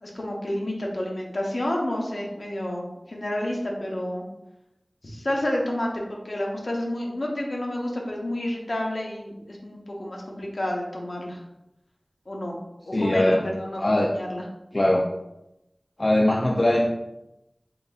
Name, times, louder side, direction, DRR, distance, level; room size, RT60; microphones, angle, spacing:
voice 1, 0.0-4.2 5.0-11.4 12.3-12.6 12.8-14.5, left 1 dB, 70° left, -1 dB, 0.9 m, -30 dB
voice 2, 12.9-13.4 13.8-14.1 14.7-15.1 16.0-16.9, left 1 dB, 50° left, -1 dB, 0.4 m, -20 dB
3.9 x 3.8 x 2.3 m, 0.90 s
wide cardioid pair, 45°, 0 cm